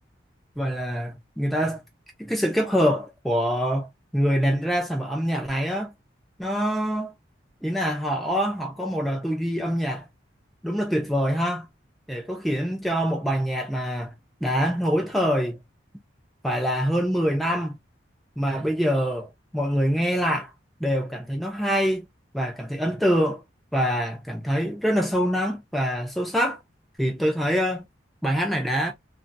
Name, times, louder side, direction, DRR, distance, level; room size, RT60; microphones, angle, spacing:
voice 1, 0.6-1.8 2.2-5.9 6.4-7.1 7.6-10.1 10.6-11.7 12.1-14.1 14.4-15.6 16.4-17.8 18.4-20.5 20.8-22.1 22.3-23.4 23.7-26.6 27.0-27.8 28.2-28.9, equal, ahead, 0.7 m, -25 dB
2.7 x 2.7 x 2.5 m
head